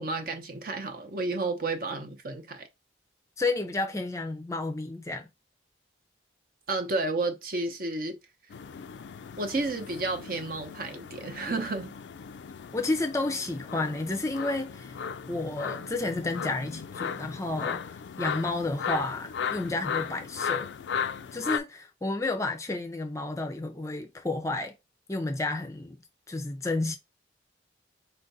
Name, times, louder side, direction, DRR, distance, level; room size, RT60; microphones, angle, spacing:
voice 1, 0.0-2.7 6.7-8.2 9.4-11.9, right 2 dB, 50° right, 0.7 m, -31 dB
voice 2, 3.4-5.3 12.7-15.0 15.3-20.7 21.3-24.7 25.1-26.0 26.3-26.9, left 2 dB, 15° left, 0.5 m, -31 dB
sound 1, 8.5-21.6, left 7 dB, 75° left, 0.3 m, -36 dB
4.4 x 2.5 x 4.0 m
head